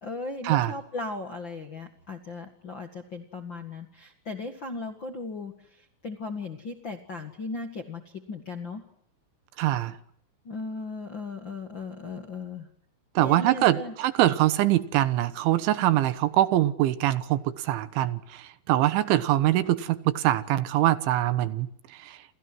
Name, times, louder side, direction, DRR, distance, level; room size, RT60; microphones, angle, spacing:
voice 1, 0.0-8.8 10.4-12.7 13.2-13.9, left 3 dB, 65° left, 1.2 m, -37 dB
voice 2, 9.6-10.0 13.2-21.7 22.0-22.2, right 14 dB, 80° right, 3.6 m, -23 dB
29.0 x 28.5 x 6.2 m
omnidirectional pair, 5.5 m